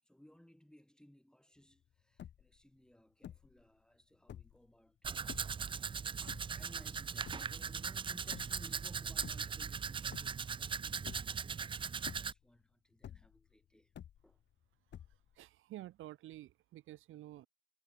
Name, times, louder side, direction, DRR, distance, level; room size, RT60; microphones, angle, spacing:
voice 1, 0.0-6.0 6.4-13.9 14.2-14.4, equal, 5° left, 7.8 m, -62 dB
sound 1, 1.7-1.8 2.0-2.6 3.2-3.6 4.1-4.7 5.3-5.7 6.3-6.9 7.2-7.7 8.3-8.7 9.1-9.8 10.1-10.6 11.1-11.6 12.0-12.6 13.0-13.5 13.9-14.5 14.9-15.4, left 10 dB, 65° left, 2.5 m, -51 dB
Domestic sounds home sounds, 5.0-12.3, right 6 dB, 25° right, 0.4 m, -39 dB
voice 2, 15.3-17.5, right 15 dB, 85° right, 2.6 m, -50 dB
cardioid pair, 90°, 20 cm